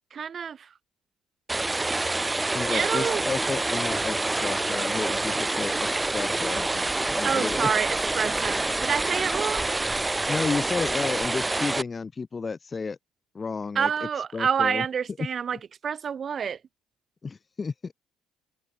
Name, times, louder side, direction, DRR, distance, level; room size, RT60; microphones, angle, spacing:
voice 1, 0.1-0.7 2.7-3.2 7.2-9.7 13.7-15.6 15.8-16.6, right 7 dB, 50° right, 1.2 m, -28 dB
sound 1, 1.5-11.8, right 2 dB, 20° right, 1.2 m, -27 dB
voice 2, 2.5-7.7 10.3-13.0 13.3-14.8 15.2-15.3 17.2-17.9, left 4 dB, 35° left, 3.4 m, -32 dB
sound 2, 3.5-11.6, equal, ahead, 3.9 m, -43 dB
hypercardioid pair, 55°, 0 cm